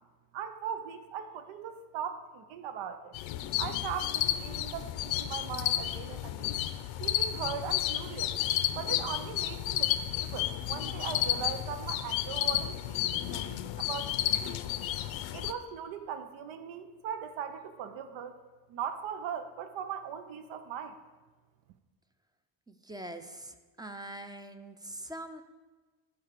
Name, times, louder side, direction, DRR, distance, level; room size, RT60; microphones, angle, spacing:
voice 1, 0.3-3.2 3.6-6.7 7.0-8.4 8.7-14.1 14.4-14.6 15.3-18.3 18.7-21.0, right 8 dB, 85° right, 9 dB, 0.8 m, -39 dB
sound 1, 3.1-15.5, left 12 dB, 90° left, 0.7 m, -32 dB
voice 2, 22.7-25.4, right 1 dB, 10° right, 8 dB, 0.4 m, -43 dB
13.0 x 4.8 x 6.7 m, 1.3 s
cardioid pair, 145°, 45 cm